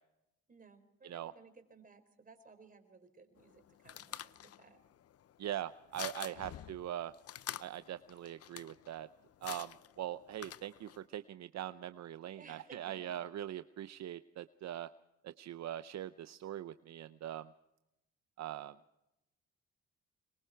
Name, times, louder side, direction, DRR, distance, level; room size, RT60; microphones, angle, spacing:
voice 1, 0.5-4.3 4.6-4.8 6.3-6.4 12.4-13.0, right 4 dB, 30° right, 7 dB, 4.3 m, -58 dB
sound 1, 3.4-11.0, left 11 dB, 50° left, 0.7 m, -48 dB
voice 2, 5.4-7.1 7.6-9.1 9.4-14.9 15.2-17.5 18.4-18.7, right 12 dB, 60° right, 12 dB, 0.7 m, -42 dB
25.0 x 22.5 x 4.6 m, 0.90 s
cardioid pair, 90°, 30 cm